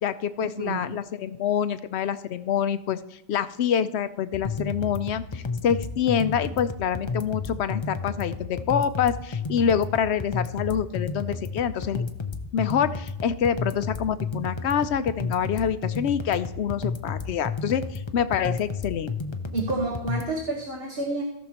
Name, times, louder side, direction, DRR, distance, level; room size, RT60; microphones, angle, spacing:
voice 1, 0.0-3.0 3.3-12.1 12.5-19.1, left 8 dB, 75° left, 12 dB, 0.9 m, -26 dB
sound 1, 4.3-20.3, left 4 dB, 30° left, 0.6 m, -32 dB
voice 2, 19.5-21.2, right 2 dB, 60° right, 0 dB, 1.7 m, -29 dB
17.0 x 6.4 x 3.0 m, 0.89 s
omnidirectional pair, 1.1 m